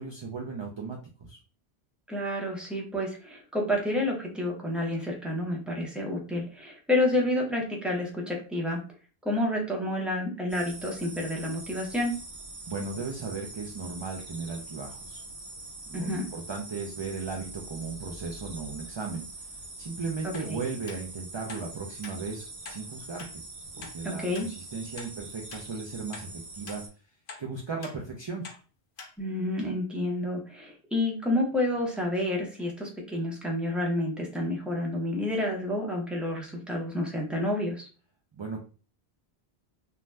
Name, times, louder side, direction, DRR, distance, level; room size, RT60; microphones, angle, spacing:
voice 1, 0.0-1.4 12.7-15.2 15.9-19.2 19.8-23.4 23.8-26.8 27.4-28.5 38.3-38.7, right 4 dB, 45° right, 0 dB, 0.3 m, -36 dB
voice 2, 2.1-8.8 9.2-12.1 15.9-16.3 20.4-20.6 23.8-24.5 29.2-37.9, left 1 dB, ahead, -1 dB, 0.7 m, -29 dB
sound 1, 10.5-26.9, right 2 dB, 90° right, 1.2 m, -44 dB
sound 2, 20.3-20.5 20.9-21.0 21.5-21.7 22.0-22.2 22.6-22.8 23.2-23.3 23.8-23.9 24.3-24.5 25.0-25.1 25.5-25.7 26.1-26.3 26.7-26.8 27.3-27.4 27.8-28.0 28.4-28.6 29.0-29.1 29.6-29.7, left 4 dB, 80° left, 0.9 m, -44 dB
2.6 x 2.2 x 3.2 m, 0.36 s
omnidirectional pair, 1.1 m